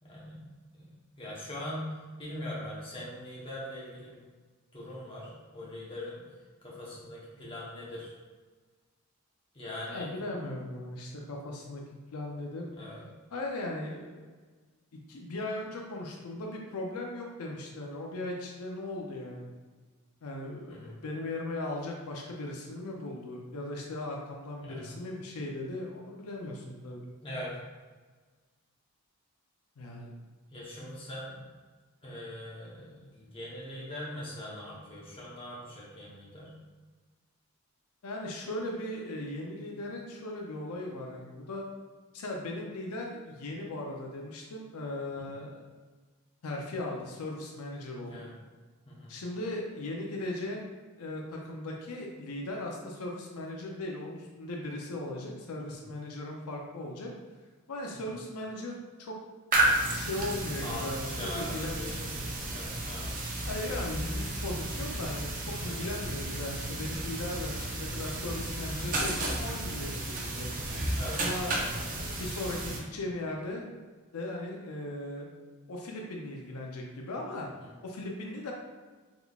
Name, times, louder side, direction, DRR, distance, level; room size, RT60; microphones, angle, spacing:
voice 1, 0.0-1.9 2.2-4.2 4.7-6.2 6.6-8.1 9.5-10.1 12.8-13.0 20.7-21.0 24.6-24.9 27.2-27.6 30.5-31.4 32.0-36.5 48.1-48.3 48.8-49.2 55.7-55.8 58.0-58.1 60.6-62.2 62.5-63.1 65.6-65.8 70.9-71.2 77.6-77.7, left 1 dB, 25° left, -6 dB, 0.9 m, -41 dB
voice 2, 9.9-11.8 12.1-12.7 13.3-14.2 14.9-19.5 20.2-27.1 29.8-30.1 38.0-41.6 42.1-45.6 46.4-48.3 49.1-50.7 51.0-57.1 57.7-59.2 59.9-61.1 61.4-62.0 63.5-70.5 71.2-73.7 74.1-75.3 75.7-77.5 77.8-78.5, left 1 dB, 80° left, 0 dB, 0.5 m, -38 dB
sound 1, 59.5-72.8, right 2 dB, 35° right, 0.6 m, -33 dB
3.6 x 3.5 x 2.3 m, 1.4 s
head